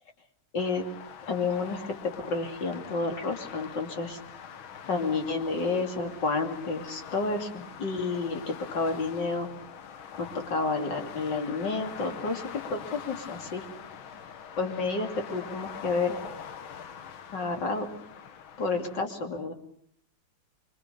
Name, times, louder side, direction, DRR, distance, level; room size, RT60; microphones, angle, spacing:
sound 1, 0.6-19.0, left 7 dB, 70° left, 2.0 m, -44 dB
voice 1, 1.3-4.2 4.9-9.5 10.2-13.6 14.6-16.2 17.3-17.9 18.6-19.5, left 3 dB, 50° left, 5 dB, 3.3 m, -30 dB
25.5 x 25.0 x 6.9 m, 0.62 s
omnidirectional pair, 2.4 m